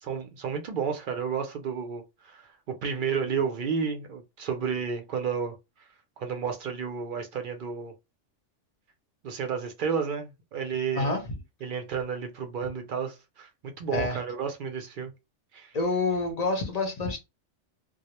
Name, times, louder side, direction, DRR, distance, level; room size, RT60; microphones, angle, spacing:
voice 1, 0.0-5.5 6.2-7.9 9.2-11.1 11.6-15.1 15.5-15.7, right 6 dB, 60° right, 0.5 m, -31 dB
voice 2, 15.7-17.2, left 3 dB, 45° left, 0.6 m, -27 dB
2.2 x 2.0 x 2.8 m
omnidirectional pair, 1.2 m